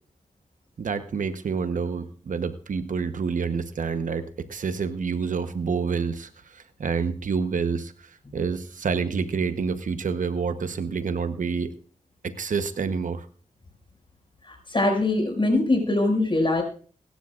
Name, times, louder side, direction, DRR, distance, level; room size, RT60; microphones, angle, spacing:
voice 1, 0.8-7.9 8.3-11.7 12.2-13.3, right 5 dB, 75° right, 10 dB, 0.9 m, -28 dB
voice 2, 14.4-16.6, left 2 dB, 40° left, 2 dB, 5.7 m, -22 dB
22.5 x 12.0 x 2.4 m, 0.43 s
cardioid pair, 50°, 14 cm